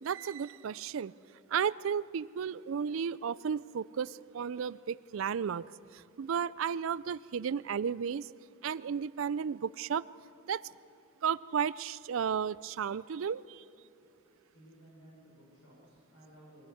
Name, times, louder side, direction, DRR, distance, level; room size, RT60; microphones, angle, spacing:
voice 1, 0.0-1.1 1.5-8.3 8.6-10.1 10.5-10.6 11.2-13.6, right 7 dB, 75° right, 19 dB, 0.4 m, -33 dB
voice 2, 13.8-16.7, right 1 dB, 75° left, -4 dB, 5.1 m, -58 dB
23.0 x 16.0 x 7.9 m, 2.7 s
head